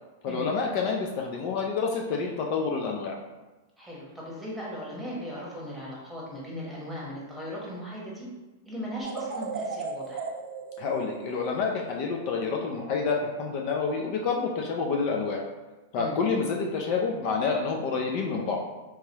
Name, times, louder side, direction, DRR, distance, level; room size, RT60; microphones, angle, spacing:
voice 1, 0.2-3.1 10.8-15.4 15.9-18.6, left 5 dB, 50° left, 0 dB, 0.5 m, -28 dB
voice 2, 3.8-8.3 8.6-10.3 15.9-16.2, equal, ahead, -6 dB, 1.2 m, -38 dB
sound 1, 9.0-12.2, right 4 dB, 65° right, 0.6 m, -36 dB
3.5 x 3.0 x 2.9 m, 1.2 s
hypercardioid pair, 130°, 0 cm